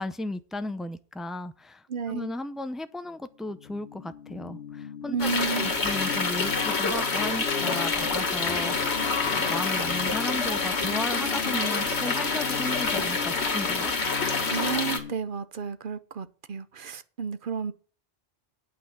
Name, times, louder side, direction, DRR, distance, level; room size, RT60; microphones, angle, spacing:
voice 1, 0.0-5.3 5.5-13.9, left 1 dB, ahead, 0.4 m, -35 dB
voice 2, 1.9-2.3 5.1-5.8 14.5-17.7, right 6 dB, 55° right, 0.9 m, -32 dB
sound 1, 3.5-15.1, left 8 dB, 70° left, 0.9 m, -38 dB
sound 2, 5.2-15.0, left 4 dB, 85° left, 1.9 m, -27 dB
8.9 x 5.6 x 7.8 m
omnidirectional pair, 1.1 m